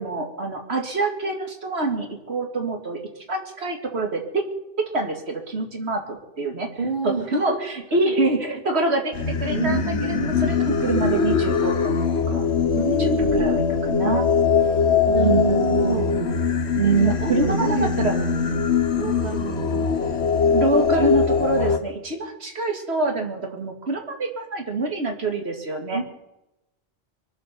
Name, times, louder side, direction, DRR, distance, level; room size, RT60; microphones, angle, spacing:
voice 1, 0.0-3.0 3.3-4.4 4.8-6.7 7.0-9.1 9.4-12.0 12.3-12.5 12.9-14.3 15.2-16.4 16.7-18.1 20.5-26.0, right 3 dB, 75° right, 3 dB, 2.3 m, -25 dB
voice 2, 6.7-7.6 7.9-8.1 9.5-10.3 12.7-13.5 15.0-16.1 16.8-18.6 18.9-20.2 25.9-26.0, right 2 dB, 60° right, 3 dB, 2.3 m, -28 dB
Singing, 9.1-21.8, left 6 dB, 85° left, 1.3 m, -22 dB
23.5 x 7.8 x 6.7 m, 0.92 s
omnidirectional pair, 1.1 m